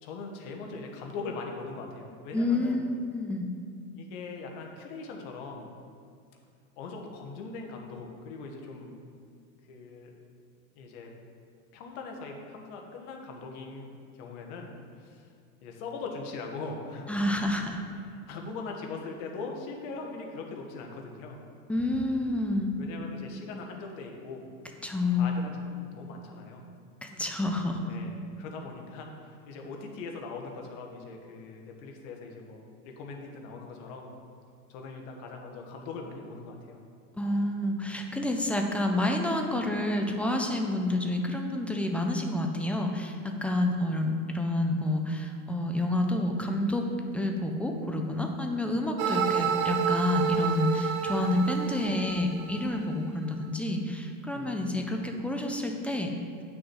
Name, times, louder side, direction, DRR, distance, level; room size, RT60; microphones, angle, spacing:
voice 1, 0.0-2.9 3.9-5.7 6.8-8.9 9.7-10.1 10.7-11.1 11.7-14.7 15.0-15.3 15.6-17.2 17.9-21.4 21.8-21.9 22.8-24.4 25.1-26.6 27.8-28.1 28.4-34.1 34.7-36.8 54.3-55.0, left 4 dB, 60° left, 2 dB, 1.6 m, -41 dB
voice 2, 2.3-3.5 17.1-17.8 21.7-22.7 24.8-25.4 27.0-27.8 37.2-46.9 47.1-56.1, left 1 dB, 5° left, 3 dB, 0.4 m, -29 dB
sound 1, 49.0-53.0, right 7 dB, 80° right, 0.9 m, -29 dB
9.1 x 6.2 x 4.7 m, 2.3 s
supercardioid pair, 135°, 43 cm